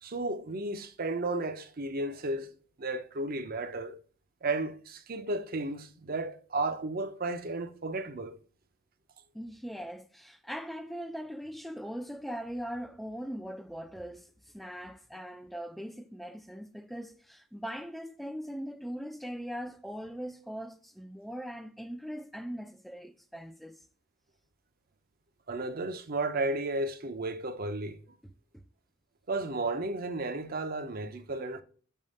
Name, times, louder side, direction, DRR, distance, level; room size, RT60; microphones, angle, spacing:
voice 1, 0.0-2.5 2.8-3.9 4.4-8.4 25.5-28.0 29.3-31.6, right 2 dB, 45° right, 0.6 m, -33 dB
voice 2, 9.3-23.8, equal, ahead, 0.3 m, -40 dB
5.5 x 3.6 x 5.3 m
head